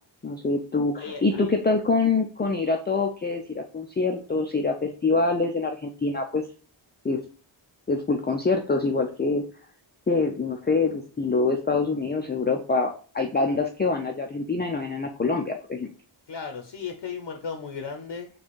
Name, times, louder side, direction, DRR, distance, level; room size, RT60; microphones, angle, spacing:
voice 1, 0.2-6.4 7.0-7.2 7.9-9.5 10.1-15.9, left 3 dB, 20° left, 3 dB, 0.5 m, -25 dB
voice 2, 1.0-1.5 16.3-18.3, left 6 dB, 60° left, 5 dB, 0.7 m, -35 dB
4.3 x 2.4 x 4.5 m, 0.41 s
wide cardioid pair, 75°, 47 cm